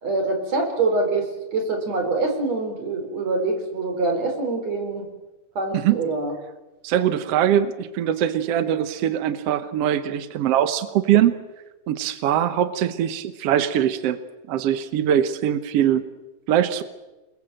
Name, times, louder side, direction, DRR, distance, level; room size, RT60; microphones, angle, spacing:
voice 1, 0.0-5.0 5.6-6.3, right 3 dB, 50° right, 3 dB, 5.3 m, -25 dB
voice 2, 6.8-11.3 11.9-14.2 14.5-16.0 16.5-16.8, right 10 dB, 65° right, 11 dB, 1.5 m, -22 dB
28.0 x 21.5 x 7.7 m, 1.1 s
omnidirectional pair, 4.0 m